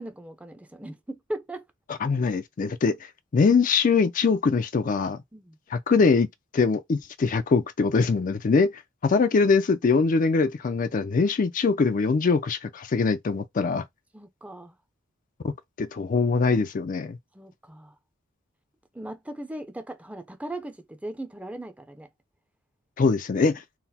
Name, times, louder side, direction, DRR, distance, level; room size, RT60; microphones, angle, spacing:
voice 1, 0.0-1.6 5.3-5.6 14.1-14.7 17.3-17.9 18.9-22.1, right 1 dB, 5° right, 0.5 m, -38 dB
voice 2, 2.0-3.0 3.3-5.2 5.7-6.3 6.5-13.8 15.4-17.2 23.0-23.6, left 4 dB, 40° left, 0.4 m, -23 dB
3.9 x 2.1 x 4.1 m
head